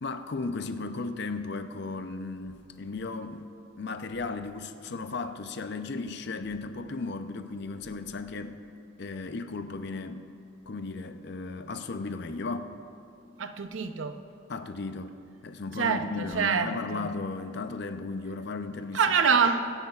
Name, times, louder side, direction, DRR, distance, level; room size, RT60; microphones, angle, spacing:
voice 1, 0.0-3.4 3.8-8.6 9.0-10.3 10.7-12.8 14.5-19.2, left 3 dB, 60° left, 0.6 m, -35 dB
voice 2, 13.4-14.2 15.8-17.1 18.9-19.7, right 5 dB, 80° right, 0.7 m, -26 dB
25.5 x 10.5 x 2.4 m
head